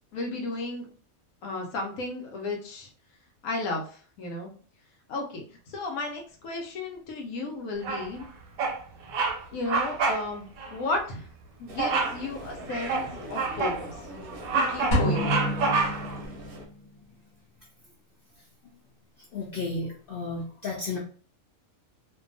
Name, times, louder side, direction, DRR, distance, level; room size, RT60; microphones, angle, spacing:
voice 1, 0.1-0.9 1.4-2.9 3.4-4.5 5.1-8.3 9.5-11.3 11.6-14.0 14.5-15.4, left 2 dB, 90° left, 1 dB, 1.1 m, -34 dB
Bird vocalization bird call bird song, 7.8-8.2 8.6-8.8 9.1-9.4 9.7-10.2 10.6-10.7 11.8-12.2 12.7-13.8 14.2-16.2, right 4 dB, 85° right, 1.0 m, -27 dB
sound 1, 11.7-16.7, right 1 dB, 55° right, 0.7 m, -42 dB
sound 2, 14.9-16.7, equal, 50° left, 1.0 m, -27 dB
voice 2, 19.3-21.0, left 3 dB, 70° left, -3 dB, 0.5 m, -33 dB
2.7 x 2.3 x 2.5 m, 0.43 s
omnidirectional pair, 1.5 m